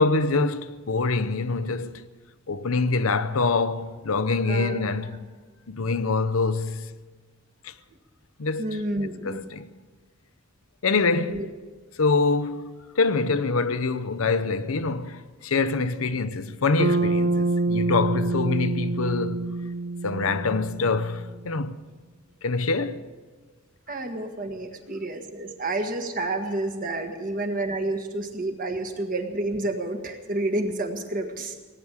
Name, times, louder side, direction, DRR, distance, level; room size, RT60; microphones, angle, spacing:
voice 1, 0.0-2.0 2.5-5.2 5.7-6.9 7.6-7.7 8.4-8.7 9.2-9.7 10.8-11.5 12.0-19.5 20.0-21.8 22.4-23.0, left 3 dB, 90° left, 0.8 m, -25 dB
voice 2, 4.5-4.9 8.6-9.4 11.3-11.5 23.9-31.5, right 2 dB, 40° right, 1.6 m, -29 dB
Bass guitar, 16.8-21.2, right 2 dB, 80° right, 0.6 m, -26 dB
18.5 x 8.9 x 8.2 m
head